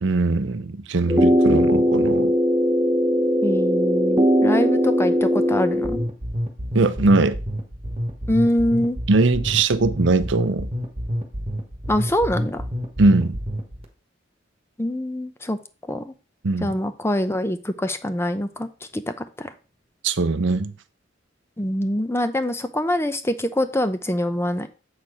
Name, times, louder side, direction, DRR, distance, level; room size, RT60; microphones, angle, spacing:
voice 1, 0.0-2.3 6.7-7.4 9.1-10.7 13.0-13.4 16.4-16.7 20.0-20.7, right 3 dB, 70° right, 0.6 m, -20 dB
sound 1, 1.1-6.0, equal, 15° right, 0.8 m, -19 dB
voice 2, 3.4-6.0 8.3-9.0 11.9-12.7 14.8-15.6 15.9-16.1 16.6-18.7 18.9-19.5 21.6-24.7, left 1 dB, 15° left, 0.6 m, -24 dB
sound 2, 5.8-13.8, equal, 30° right, 1.4 m, -28 dB
7.5 x 4.3 x 4.9 m
head